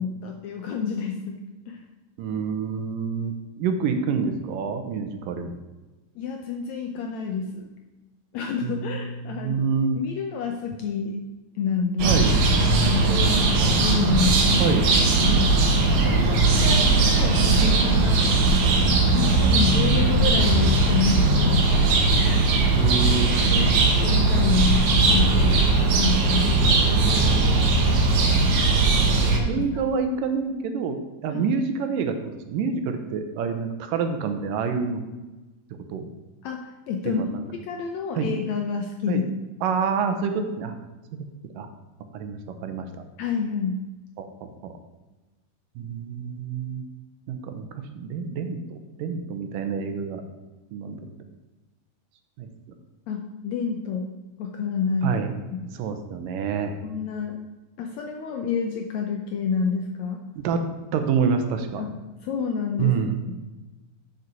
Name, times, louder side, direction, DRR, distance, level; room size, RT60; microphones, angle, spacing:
voice 1, 0.0-1.8 6.2-7.7 8.3-9.6 10.0-11.2 11.6-12.2 12.5-14.7 15.2-15.5 16.0-18.3 19.1-21.7 23.4-25.7 26.0-26.6 29.4-29.7 31.3-31.5 36.4-37.2 37.6-39.3 43.2-43.8 53.1-54.1 54.4-55.1 55.5-55.7 56.8-57.4 57.8-60.2 61.8-61.9 62.2-62.9 63.3-63.4, left 5 dB, 75° left, 3 dB, 1.7 m, -28 dB
voice 2, 2.2-3.3 3.6-5.5 8.6-10.0 12.0-12.3 14.6-14.9 22.7-23.3 28.5-28.6 29.5-31.0 31.2-35.1 35.9-36.1 37.1-37.4 38.2-38.3 39.1-39.2 39.6-40.8 41.1-41.2 41.6-41.7 42.1-42.9 44.2-44.7 45.8-46.8 47.3-50.2 50.7-51.0 52.4-52.5 55.0-55.3 55.7-56.8 60.4-60.6 60.9-61.8 62.8-63.2, right 6 dB, 80° right, 7 dB, 2.5 m, -27 dB
sound 1, 12.0-29.4, right 3 dB, 65° right, 2.4 m, -19 dB
8.0 x 6.7 x 6.0 m, 1.2 s
omnidirectional pair, 3.9 m